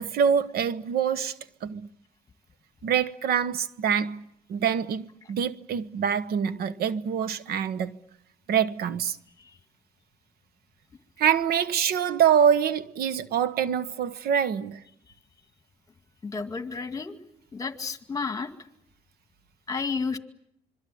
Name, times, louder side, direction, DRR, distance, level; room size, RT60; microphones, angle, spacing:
voice 1, 0.0-1.9 2.8-8.0 8.5-9.2 11.2-14.8, right 8 dB, 65° right, 1.1 m, -25 dB
voice 2, 16.2-17.2 17.5-18.5 19.7-20.2, left 5 dB, 20° left, 2.1 m, -31 dB
26.0 x 23.5 x 8.6 m
cardioid pair, 110°, 17 cm